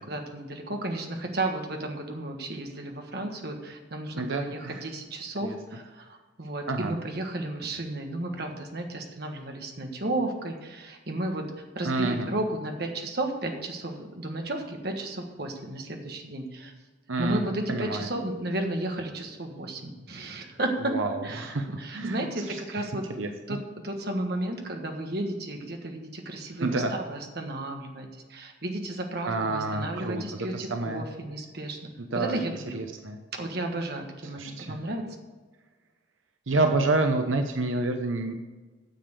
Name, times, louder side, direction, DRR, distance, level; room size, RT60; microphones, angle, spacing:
voice 1, 0.1-11.5 11.7-16.7 17.2-22.4 22.7-23.0 23.5-23.6 23.8-32.9 33.4-35.2, right 1 dB, 55° right, 3 dB, 1.5 m, -33 dB
voice 2, 4.1-4.8 5.4-5.6 6.7-6.9 11.8-12.3 17.1-17.4 17.7-18.1 20.8-21.6 21.9-22.8 23.2-23.3 26.6-26.9 29.3-31.1 32.0-32.4 32.7-33.2 34.3-34.8 36.5-38.3, right 2 dB, 90° right, 5 dB, 0.9 m, -28 dB
9.3 x 6.9 x 6.7 m, 1.3 s
head